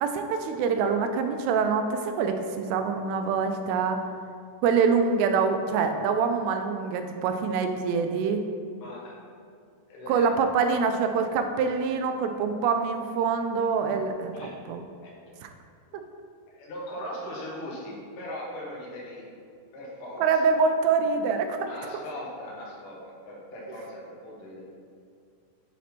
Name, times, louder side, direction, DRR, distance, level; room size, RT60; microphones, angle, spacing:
voice 1, 0.0-4.0 4.6-8.4 10.1-14.8 15.4-15.5 20.2-21.7, right 5 dB, 85° right, 6 dB, 2.7 m, -25 dB
voice 2, 8.8-9.1 9.9-10.3 14.3-14.5 15.0-15.1 16.5-19.2 19.7-20.6 21.7-24.6, left 1 dB, 70° left, -5 dB, 1.3 m, -39 dB
7.3 x 4.1 x 4.3 m, 2.3 s
omnidirectional pair, 4.8 m